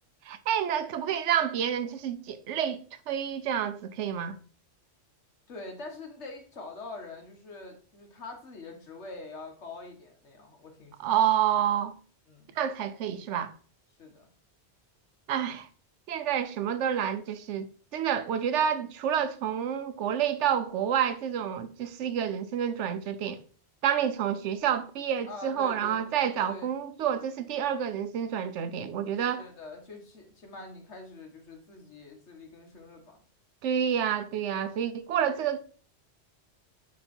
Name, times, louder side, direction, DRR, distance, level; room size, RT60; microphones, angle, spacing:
voice 1, 0.2-4.4 11.0-11.9 12.6-13.5 15.3-15.7 16.1-23.4 23.8-29.4 33.6-35.6, right 9 dB, 85° right, 1.0 m, -29 dB
voice 2, 5.5-11.1 12.3-12.6 14.0-14.3 25.3-26.1 26.5-26.7 29.2-33.2, left 3 dB, 80° left, 1.8 m, -44 dB
9.3 x 3.2 x 4.3 m
omnidirectional pair, 1.2 m